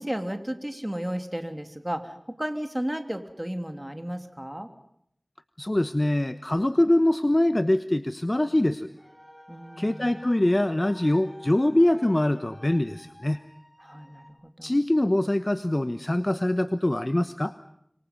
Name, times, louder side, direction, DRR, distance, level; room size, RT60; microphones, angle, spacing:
voice 1, 0.0-4.7 9.5-10.2 13.8-14.8, equal, 20° right, 7 dB, 3.1 m, -34 dB
voice 2, 5.6-8.9 9.8-13.4 14.6-17.5, left 1 dB, 35° left, 11 dB, 1.1 m, -23 dB
sound 1, 8.9-14.3, equal, 10° left, 5.6 m, -51 dB
27.5 x 23.5 x 5.4 m, 0.72 s
wide cardioid pair, 40°, 0 cm